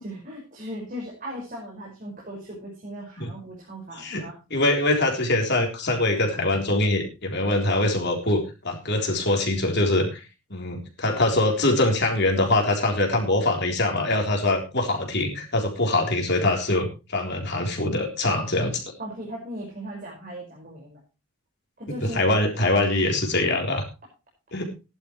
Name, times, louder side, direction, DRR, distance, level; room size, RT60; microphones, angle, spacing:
voice 1, 0.0-4.4 19.0-21.0 21.8-22.3, equal, 40° right, -3 dB, 5.5 m, -38 dB
voice 2, 4.5-10.2 10.5-18.8 22.0-23.8 24.5-24.7, left 2 dB, 50° left, 2 dB, 3.7 m, -23 dB
17.5 x 11.5 x 3.2 m, 0.29 s
head